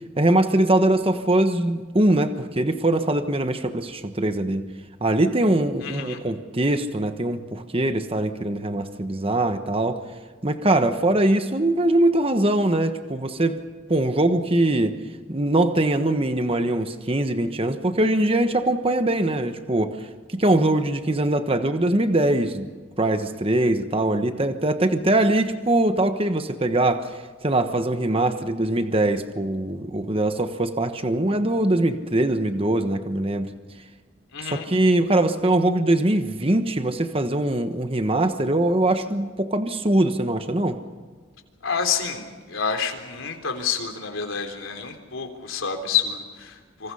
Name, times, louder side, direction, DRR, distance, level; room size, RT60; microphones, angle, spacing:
voice 1, 0.2-4.6 5.0-10.0 10.4-13.6 13.9-15.0 15.3-19.9 20.3-22.7 23.0-27.1 27.4-33.5 34.4-40.8, right 1 dB, 25° right, 8 dB, 1.2 m, -22 dB
voice 2, 5.8-6.2 34.3-34.7 41.6-46.9, left 6 dB, 75° left, 5 dB, 3.6 m, -28 dB
27.0 x 26.0 x 5.6 m, 1.5 s
head